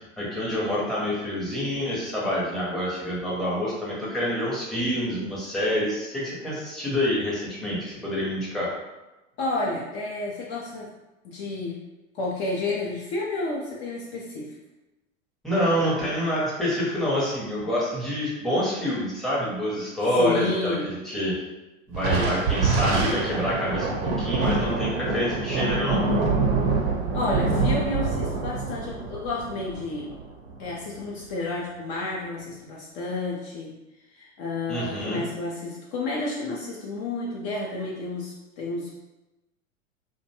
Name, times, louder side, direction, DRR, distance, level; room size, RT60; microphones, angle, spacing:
voice 1, 0.0-8.7 15.4-21.3 21.9-26.0 34.7-35.2, equal, ahead, -7 dB, 0.7 m, -27 dB
voice 2, 9.4-10.9 11.2-11.8 12.1-14.5 20.1-20.9 27.1-30.1 30.6-33.8 34.1-39.0, left 2 dB, 40° left, -3 dB, 0.5 m, -30 dB
Thunder, 21.9-30.7, right 3 dB, 60° right, 0.7 m, -25 dB
2.5 x 2.2 x 2.8 m, 1.0 s
hypercardioid pair, 100°, 40 cm